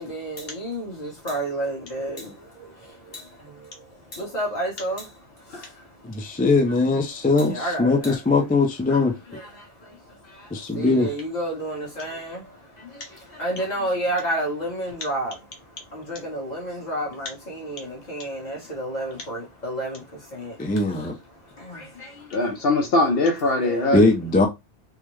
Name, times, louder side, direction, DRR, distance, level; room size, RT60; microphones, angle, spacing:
voice 1, 0.0-2.2 4.1-5.1 7.5-8.2 8.9-9.4 10.7-12.4 13.4-15.3 15.9-20.0 20.3-20.5 21.6-21.8 23.6-23.9, right 1 dB, 40° left, 1.3 m, -30 dB
voice 2, 6.0-9.1 10.5-11.1 20.6-21.1 23.9-24.5, left 3 dB, 15° left, 0.4 m, -20 dB
voice 3, 22.3-24.2, left 2 dB, 65° left, 0.8 m, -22 dB
3.5 x 2.1 x 3.1 m
omnidirectional pair, 1.1 m